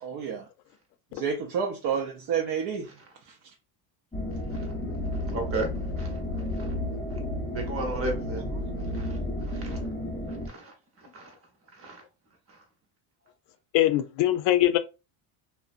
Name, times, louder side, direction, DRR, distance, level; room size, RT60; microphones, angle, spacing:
voice 1, 0.0-0.5 1.1-2.9 8.5-8.6, right 7 dB, 50° right, 0.6 m, -30 dB
sound 1, 4.1-10.5, left 1 dB, 10° left, 0.6 m, -32 dB
voice 2, 5.3-5.7 6.0-6.1 7.5-8.4 8.9-9.2 9.5-9.8 10.5-10.7 11.1-11.2 11.8-12.0, right 2 dB, 30° right, 0.9 m, -33 dB
voice 3, 13.7-14.8, left 14 dB, 70° left, 0.5 m, -22 dB
2.5 x 2.1 x 2.4 m
cardioid pair, 125°, 44 cm